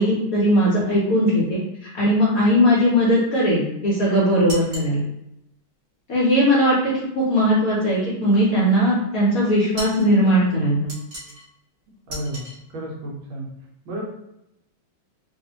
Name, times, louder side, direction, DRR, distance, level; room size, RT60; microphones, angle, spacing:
voice 1, 0.0-5.1 6.1-10.9, equal, 65° left, -6 dB, 0.9 m, -19 dB
sound 1, 4.5-4.9 9.8-10.1 10.9-11.5 12.1-12.6, equal, 45° right, 1.3 m, -35 dB
voice 2, 12.1-12.5 12.7-13.5 13.8-14.0, right 1 dB, 75° right, -2 dB, 1.5 m, -31 dB
3.4 x 2.4 x 2.8 m, 0.85 s
omnidirectional pair, 2.3 m